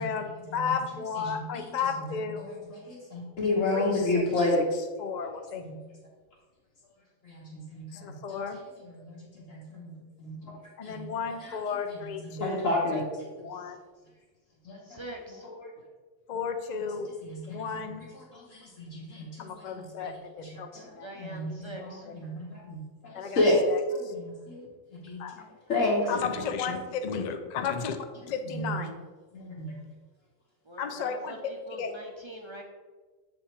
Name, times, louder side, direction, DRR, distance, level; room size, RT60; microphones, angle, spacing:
voice 1, 0.0-2.4 3.7-4.2 5.0-5.6 7.9-8.6 10.8-12.7 13.4-13.8 16.3-17.1 17.5-18.1 19.4-21.1 23.1-24.1 25.2-25.4 26.1-28.0 28.3-29.0 30.8-31.5 31.8-31.9, left 6 dB, 55° left, 6 dB, 0.4 m, -33 dB
voice 2, 1.2-1.6 2.0-4.6 5.5-5.8 7.2-10.6 10.8-11.1 11.4-11.6 11.9-13.0 14.6-15.0 15.5-15.7 17.2-20.1 20.4-20.9 21.2-23.6 23.9-24.6 24.9-26.1 28.4-28.9 29.3-29.7, left 2 dB, 75° left, -7 dB, 1.5 m, -32 dB
voice 3, 14.8-15.5 21.0-22.1 30.6-32.6, right 1 dB, 40° right, 1 dB, 0.4 m, -43 dB
8.1 x 3.4 x 4.4 m, 1.4 s
omnidirectional pair, 1.4 m